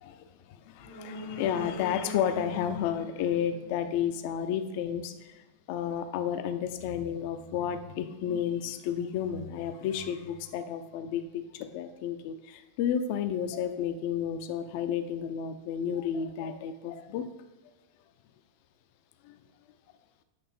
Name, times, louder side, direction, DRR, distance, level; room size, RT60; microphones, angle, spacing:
voice 1, 0.5-5.4 5.7-17.3 19.2-19.3, left 9 dB, 45° left, 9 dB, 0.5 m, -32 dB
sound 1, 0.8-4.5 4.8-4.9, left 1 dB, 80° right, 2.0 m, -43 dB
7.6 x 3.2 x 4.3 m, 1.2 s
figure-of-eight pair, 90°, 0 cm